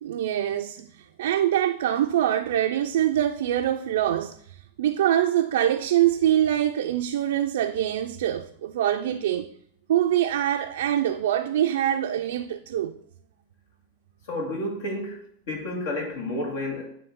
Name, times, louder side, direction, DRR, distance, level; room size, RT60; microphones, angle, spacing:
voice 1, 0.0-9.5 9.9-13.0, right 11 dB, 80° right, 0.3 m, -24 dB
voice 2, 14.3-15.2 15.5-16.9, left 1 dB, 70° left, 2.2 m, -30 dB
9.3 x 3.2 x 3.6 m
supercardioid pair, 125°, 0 cm